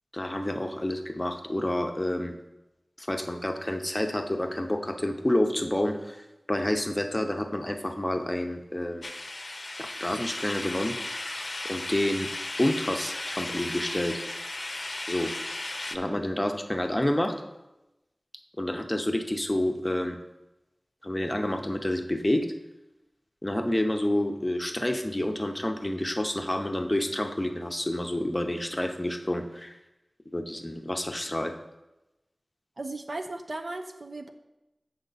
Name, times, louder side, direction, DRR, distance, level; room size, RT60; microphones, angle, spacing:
voice 1, 0.1-2.3 3.0-6.2 6.5-9.0 9.8-12.3 12.6-14.2 15.1-15.3 15.9-17.4 18.6-20.2 21.0-22.5 23.4-29.7 30.3-31.5, left 1 dB, 20° left, 5 dB, 0.7 m, -29 dB
sound 1, 9.0-16.0, left 2 dB, 55° left, 0.6 m, -35 dB
voice 2, 32.8-34.3, right 2 dB, 65° right, 5 dB, 0.6 m, -36 dB
8.0 x 6.5 x 4.0 m, 0.96 s
wide cardioid pair, 65°, 0 cm